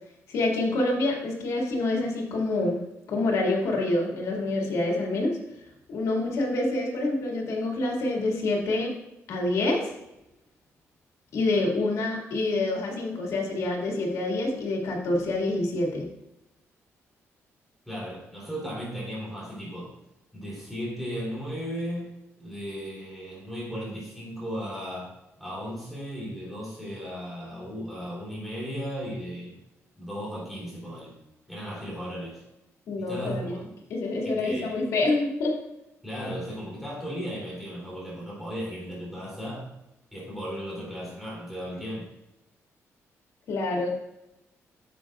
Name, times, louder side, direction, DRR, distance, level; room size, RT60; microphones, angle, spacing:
voice 1, 0.3-2.8 3.1-5.4 5.9-8.9 9.3-9.9 11.3-16.1 32.9-33.6 33.9-35.5 43.5-43.9, left 2 dB, 80° left, -1 dB, 2.2 m, -27 dB
voice 2, 17.8-20.0 20.3-22.1 22.4-29.6 30.0-31.2 31.5-32.4 33.0-33.7 34.2-34.8 36.0-39.7 40.1-42.1, equal, ahead, -6 dB, 3.2 m, -36 dB
9.8 x 7.6 x 2.4 m, 0.89 s
cardioid pair, 145°, 5 cm